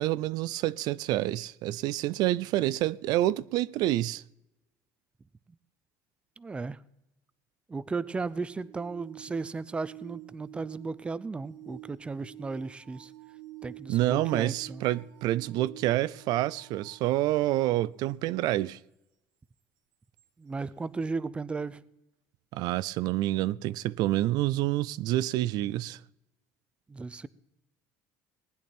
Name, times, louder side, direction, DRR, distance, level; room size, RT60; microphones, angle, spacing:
voice 1, 0.0-4.2 13.9-18.8 22.5-26.0, right 15 dB, 65° right, 0.4 m, -28 dB
voice 2, 6.4-6.8 7.7-13.1 13.6-14.8 20.4-21.8 26.9-27.3, right 4 dB, 15° right, 0.5 m, -35 dB
sound 1, 8.1-17.9 20.2-20.3, right 17 dB, 85° right, 2.1 m, -49 dB
19.5 x 10.5 x 4.4 m
cardioid pair, 135°, 7 cm